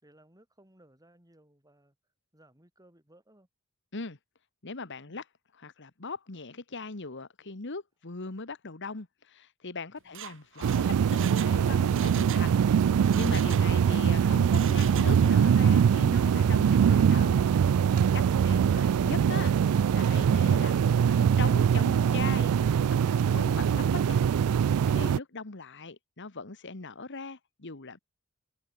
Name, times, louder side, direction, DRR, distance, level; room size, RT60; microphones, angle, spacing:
voice 1, 0.0-2.0 2.3-3.5 5.1-5.2 10.0-10.2, right 1 dB, 15° right, 6.6 m, -61 dB
voice 2, 4.6-5.2 5.6-17.4 18.1-22.5 22.9-24.2 24.9-28.0, left 3 dB, 55° left, 1.5 m, -40 dB
Mechanisms, 10.0-12.5 12.8-14.0 14.4-15.5 15.8-15.9, right 9 dB, 60° right, 4.5 m, -42 dB
sound 1, 10.6-25.2, right 7 dB, 80° right, 0.3 m, -23 dB
head